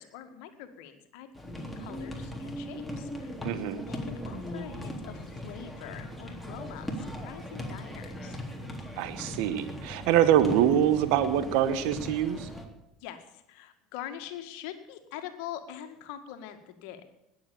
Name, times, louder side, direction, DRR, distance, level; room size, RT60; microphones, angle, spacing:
voice 1, 0.0-3.3 3.9-8.4 13.0-17.0, left 10 dB, 65° left, 8 dB, 1.9 m, -44 dB
sound 1, 1.3-12.6, equal, 5° left, 3.6 m, -39 dB
voice 2, 3.4-3.8 9.0-12.5, right 10 dB, 65° right, 12 dB, 1.1 m, -25 dB
20.0 x 7.9 x 7.1 m, 0.87 s
hypercardioid pair, 70°, 0 cm